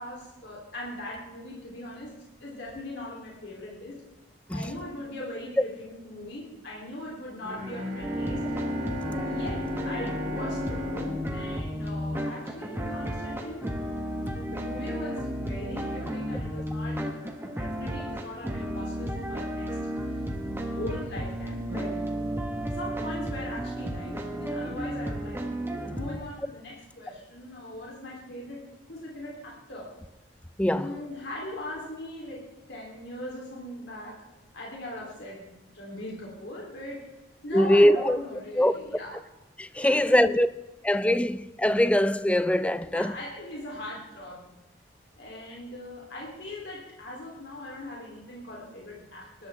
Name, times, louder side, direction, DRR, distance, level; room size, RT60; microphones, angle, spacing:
voice 1, 0.0-2.1 2.4-4.0 4.5-8.4 9.2-13.7 14.5-17.1 17.4-19.7 20.1-20.2 20.7-22.0 22.7-29.9 30.7-34.2 34.5-37.1 37.4-39.2 39.8-40.2 42.8-44.4 45.2-49.5, left 1 dB, 60° left, 3.3 m, -40 dB
Bowed string instrument, 7.4-12.4, left 1 dB, 45° right, 3.7 m, -37 dB
sound 1, 8.0-26.2, equal, 10° right, 1.3 m, -33 dB
voice 2, 30.6-31.0 37.5-38.2 38.6-38.7 39.6-40.5 40.8-43.2, left 1 dB, 5° left, 0.4 m, -22 dB
20.5 x 12.0 x 3.5 m
head